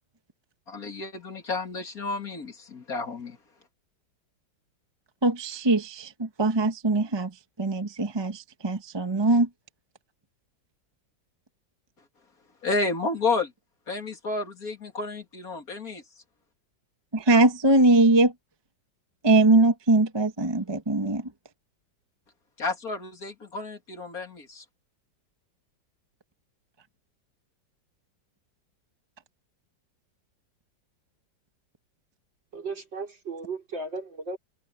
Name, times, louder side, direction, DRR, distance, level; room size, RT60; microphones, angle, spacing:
voice 1, 0.7-3.4 12.6-13.5 13.9-16.0 22.6-24.6, left 3 dB, 50° left, 2.9 m, -31 dB
voice 2, 5.2-7.3 7.6-9.5 17.1-18.3 19.2-21.2, right 2 dB, 15° right, 1.0 m, -21 dB
voice 3, 32.5-34.4, right 3 dB, 80° right, 5.7 m, -35 dB
omnidirectional pair, 2.0 m